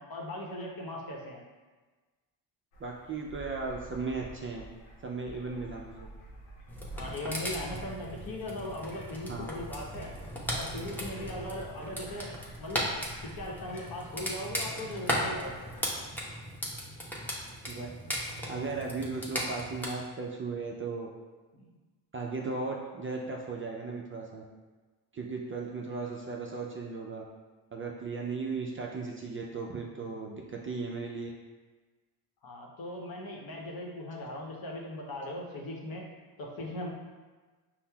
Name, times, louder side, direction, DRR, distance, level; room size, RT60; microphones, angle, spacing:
voice 1, 0.0-1.4 7.0-10.1 10.5-12.3 12.6-12.9 13.2-15.6 21.5-21.8 30.0-30.1 32.4-36.1 36.4-36.9, left 1 dB, 50° left, -1 dB, 0.8 m, -39 dB
sound 1, 2.7-15.8, right 1 dB, 85° left, 0.8 m, -48 dB
voice 2, 2.8-4.6 5.0-6.1 9.3-9.4 17.7-17.9 18.5-21.1 22.1-24.4 25.1-27.2 27.7-31.3, right 4 dB, 30° right, -1 dB, 0.4 m, -36 dB
sound 2, 6.7-19.9, equal, 5° left, 0.8 m, -37 dB
5.4 x 2.0 x 2.3 m, 1.3 s
supercardioid pair, 65°, 47 cm